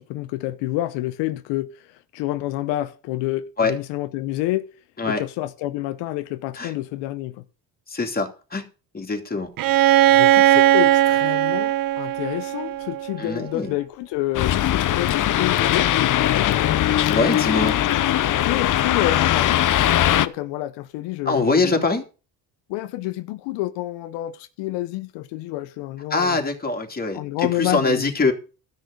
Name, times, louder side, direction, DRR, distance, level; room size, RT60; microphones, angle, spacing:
voice 1, 0.0-4.7 5.1-7.4 10.1-16.7 18.2-19.6 20.1-21.9 22.7-26.4 27.1-28.1, left 16 dB, 90° left, 0.9 m, -28 dB
voice 2, 7.9-8.6 8.9-9.5 13.2-13.7 17.1-17.8 21.3-22.0 26.1-28.3, left 3 dB, 20° left, 2.9 m, -23 dB
Bowed string instrument, 9.6-13.3, right 14 dB, 55° right, 0.6 m, -18 dB
sound 1, 14.3-20.3, left 12 dB, 50° left, 0.8 m, -20 dB
13.0 x 6.4 x 6.6 m
cardioid pair, 100°, 42 cm